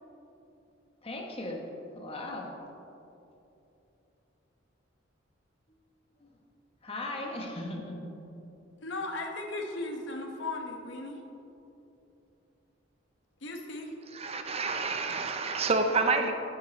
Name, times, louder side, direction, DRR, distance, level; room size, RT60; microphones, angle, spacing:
voice 1, 1.0-1.6 1.9-2.5 6.2-6.3 6.8-8.1, left 1 dB, 30° left, 0 dB, 1.3 m, -37 dB
voice 2, 8.8-11.2 13.4-13.9, left 2 dB, 65° left, 2 dB, 1.1 m, -36 dB
voice 3, 14.1-16.3, right 3 dB, 30° right, 6 dB, 0.6 m, -28 dB
10.0 x 9.4 x 4.0 m, 2.9 s
head